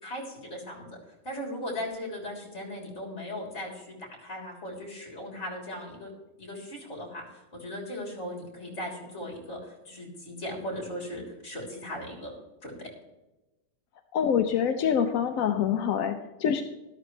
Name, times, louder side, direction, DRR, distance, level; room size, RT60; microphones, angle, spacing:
voice 1, 0.0-0.9 1.2-6.1 6.4-12.3 12.6-12.7, left 1 dB, 40° left, -1 dB, 3.7 m, -38 dB
voice 2, 14.1-16.6, left 8 dB, 65° left, 6 dB, 1.0 m, -25 dB
13.0 x 13.0 x 3.2 m, 1.1 s
omnidirectional pair, 1.9 m